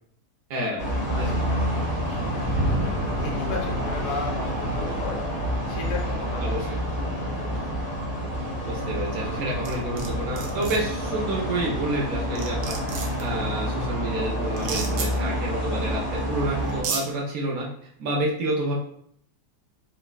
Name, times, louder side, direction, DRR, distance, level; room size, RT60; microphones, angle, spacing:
sound 1, 0.8-16.8, equal, 55° left, 1.4 m, -28 dB
voice 1, 1.1-2.4 2.7-5.2 5.7-7.7, left 4 dB, 85° left, -2 dB, 1.5 m, -37 dB
voice 2, 8.6-17.7 18.0-18.7, right 1 dB, 70° right, -3 dB, 0.9 m, -29 dB
sound 2, 9.6-10.1 10.4-10.8 12.0-12.1 12.4-13.2 14.6-15.1 16.2-16.3 16.7-17.0, right 5 dB, 85° right, 1.2 m, -31 dB
4.0 x 2.1 x 2.2 m, 0.67 s
omnidirectional pair, 1.8 m